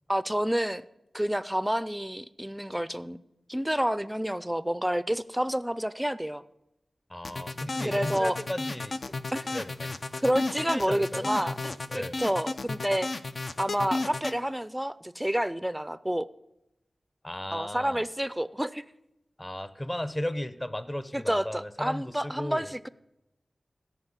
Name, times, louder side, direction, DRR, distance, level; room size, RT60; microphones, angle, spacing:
voice 1, 0.1-0.8 1.1-3.2 3.5-6.4 7.8-8.4 9.3-9.5 10.2-11.6 11.9-13.1 13.6-16.3 17.5-18.8 21.1-22.9, equal, 5° right, 16 dB, 0.4 m, -29 dB
voice 2, 7.1-9.2 9.5-10.2 10.6-11.3 11.9-12.2 17.2-18.0 19.4-22.7, left 1 dB, 20° left, 14 dB, 0.7 m, -36 dB
sound 1, 7.2-14.4, left 3 dB, 60° left, 0.5 m, -33 dB
13.5 x 5.4 x 8.1 m, 0.89 s
wide cardioid pair, 65°, 0 cm